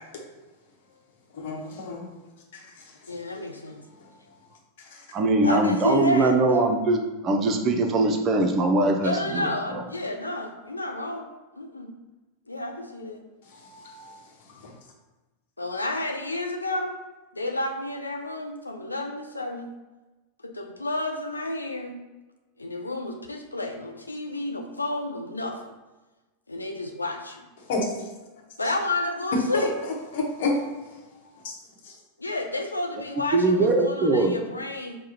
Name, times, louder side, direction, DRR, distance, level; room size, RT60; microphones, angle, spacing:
voice 1, 1.3-2.1 2.5-2.6 3.1-3.2 3.9-4.0 4.9-5.0 13.5-14.1 14.5-14.7 27.7-28.1 29.5-30.7 31.2-31.5 31.8-31.9, left 2 dB, 55° left, 0 dB, 1.0 m, -31 dB
voice 2, 3.1-3.8 5.4-6.6 9.0-11.3 11.5-11.9 12.5-13.2 15.6-16.9 17.3-19.7 20.4-22.0 22.6-25.6 26.5-27.4 28.6-29.7 32.2-35.0, left 2 dB, 80° left, 3 dB, 0.4 m, -30 dB
voice 3, 5.1-9.8 33.3-34.3, right 2 dB, 30° right, 3 dB, 0.6 m, -22 dB
4.9 x 2.2 x 4.2 m, 1.1 s
figure-of-eight pair, 90°, 0 cm